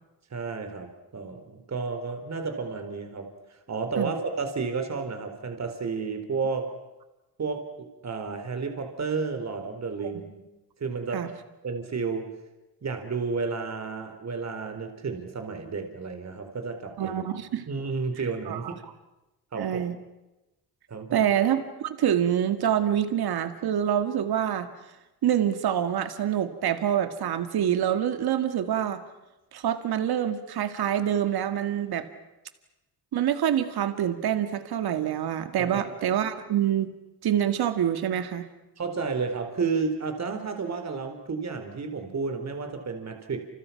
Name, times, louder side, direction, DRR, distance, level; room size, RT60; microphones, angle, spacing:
voice 1, 0.3-6.7 7.4-10.3 10.8-11.3 11.6-12.3 12.8-17.3 17.7-18.7 19.5-19.9 20.9-21.3 35.6-35.8 38.8-43.4, right 4 dB, 45° right, 6 dB, 4.3 m, -32 dB
voice 2, 17.0-17.6 18.5-18.7 19.6-20.0 21.1-24.7 25.2-29.0 29.5-32.1 33.1-36.9 37.2-38.5, right 10 dB, 70° right, 9 dB, 2.2 m, -26 dB
30.0 x 28.5 x 6.0 m, 1.0 s
cardioid pair, 95°, 39 cm